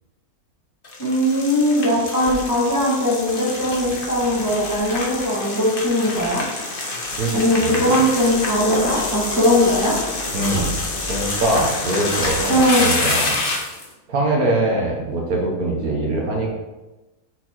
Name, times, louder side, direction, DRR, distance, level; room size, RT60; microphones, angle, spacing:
sound 1, 0.8-13.8, left 2 dB, 40° left, 1.2 m, -27 dB
voice 1, 1.0-6.4 7.3-10.0 12.5-12.9, equal, 15° left, -5 dB, 1.3 m, -19 dB
voice 2, 7.6-8.1 10.3-13.8 14.1-16.6, right 2 dB, 75° right, -1 dB, 1.7 m, -23 dB
6.5 x 4.3 x 4.3 m, 1.1 s
omnidirectional pair, 1.6 m